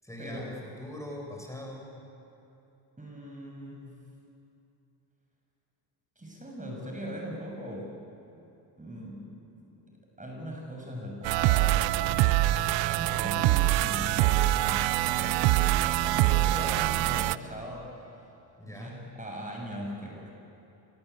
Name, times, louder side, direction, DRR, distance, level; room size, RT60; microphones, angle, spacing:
voice 1, 0.0-2.0 18.6-19.0, left 1 dB, 5° left, 0 dB, 7.7 m, -42 dB
voice 2, 3.0-4.0 6.2-7.9 8.8-9.4 9.6-9.8 10.2-17.9 18.7-20.3, equal, 15° right, -1 dB, 6.9 m, -40 dB
sound 1, 11.2-17.4, right 16 dB, 85° right, 0.7 m, -24 dB
26.5 x 22.5 x 8.4 m, 2.8 s
supercardioid pair, 65°, 44 cm